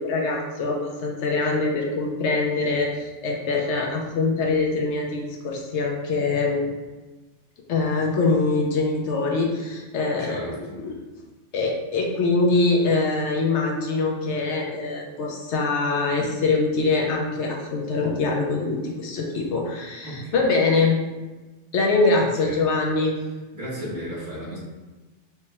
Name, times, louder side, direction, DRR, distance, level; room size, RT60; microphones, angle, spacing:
voice 1, 0.0-6.7 7.7-10.5 10.8-10.9 11.5-21.0 21.7-23.2, left 3 dB, 70° left, 0 dB, 0.8 m, -23 dB
voice 2, 10.2-10.8 20.0-20.4 22.1-22.7 23.5-24.6, equal, 40° right, -8 dB, 1.2 m, -34 dB
4.5 x 2.1 x 2.9 m, 1.2 s
omnidirectional pair, 1.3 m